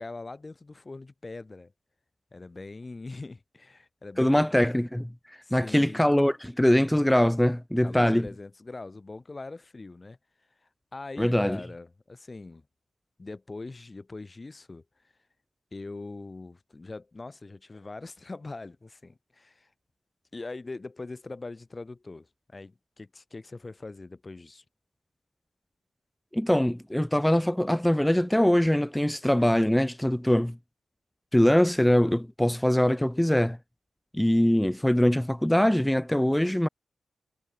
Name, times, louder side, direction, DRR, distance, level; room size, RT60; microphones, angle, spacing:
voice 1, 0.0-1.7 2.3-4.4 5.4-6.1 7.8-10.2 10.6-12.6 13.2-15.1 15.7-19.7 20.3-24.6, left 3 dB, 35° left, 5.0 m, -42 dB
voice 2, 4.2-5.1 5.5-8.3 11.2-11.6 26.3-30.6 31.3-33.6 34.1-36.7, left 1 dB, 5° left, 1.2 m, -23 dB
supercardioid pair, 45°, 0 cm